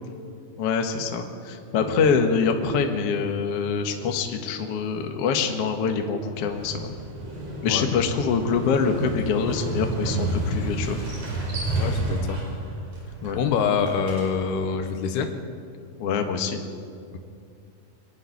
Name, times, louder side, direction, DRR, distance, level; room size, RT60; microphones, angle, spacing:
voice 1, 0.6-6.9 7.6-11.0 13.2-13.4 16.0-16.6, left 5 dB, 55° left, 4 dB, 1.7 m, -25 dB
Motorcycle, 6.3-14.7, right 1 dB, 50° right, 6.2 m, -31 dB
voice 2, 11.8-12.4 13.4-15.3, left 6 dB, 85° left, 8 dB, 3.2 m, -25 dB
23.0 x 11.5 x 9.8 m, 2.4 s
omnidirectional pair, 4.6 m